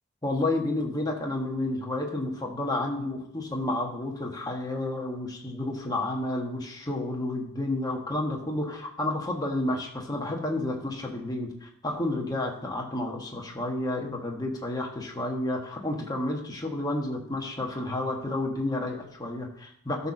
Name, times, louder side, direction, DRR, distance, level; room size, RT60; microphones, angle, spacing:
voice 1, 0.2-20.1, left 2 dB, 15° left, 0 dB, 1.3 m, -31 dB
12.5 x 4.3 x 6.3 m, 0.71 s
head